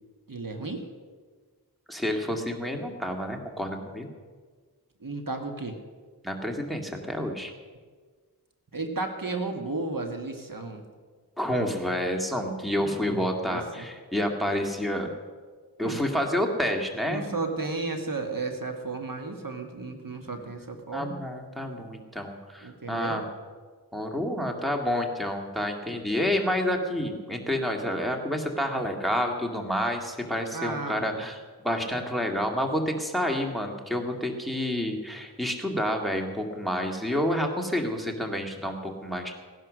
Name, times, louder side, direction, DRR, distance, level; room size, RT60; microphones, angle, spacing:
voice 1, 0.3-0.9 5.0-5.8 8.7-10.8 12.8-13.9 15.8-16.0 17.1-21.2 22.6-23.2 30.5-31.3, right 3 dB, 55° right, 4 dB, 1.7 m, -34 dB
voice 2, 1.9-4.1 6.2-7.5 11.4-15.1 15.8-17.3 20.9-23.3 23.9-31.4 31.6-39.3, equal, ahead, 2 dB, 2.0 m, -29 dB
17.0 x 11.0 x 6.4 m, 1.5 s
wide cardioid pair, 55°, 39 cm